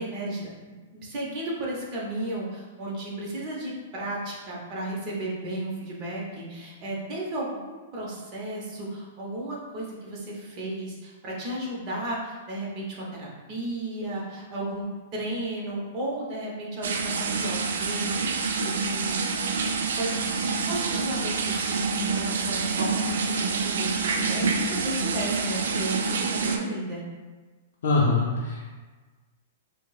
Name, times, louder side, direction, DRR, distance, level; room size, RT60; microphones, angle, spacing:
voice 1, 0.0-14.8 15.1-19.2 20.0-20.1 20.7-27.0, right 1 dB, 25° right, -4 dB, 0.7 m, -34 dB
sound 1, 16.8-26.6, right 4 dB, 80° right, 0.3 m, -27 dB
voice 2, 27.8-28.7, left 3 dB, 80° left, -5 dB, 0.5 m, -23 dB
5.1 x 2.0 x 2.3 m, 1.3 s
supercardioid pair, 175°, 0 cm